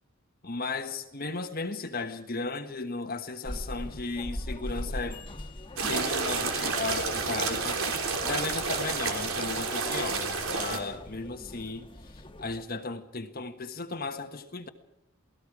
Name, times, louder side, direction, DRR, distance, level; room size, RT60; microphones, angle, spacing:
voice 1, 0.4-5.2 5.8-14.7, left 3 dB, 45° left, 1.3 m, -35 dB
sound 1, 3.4-12.6, left 1 dB, 25° left, 1.4 m, -42 dB
sound 2, 5.8-10.8, right 4 dB, 80° right, 3.4 m, -30 dB
28.5 x 18.5 x 4.9 m
head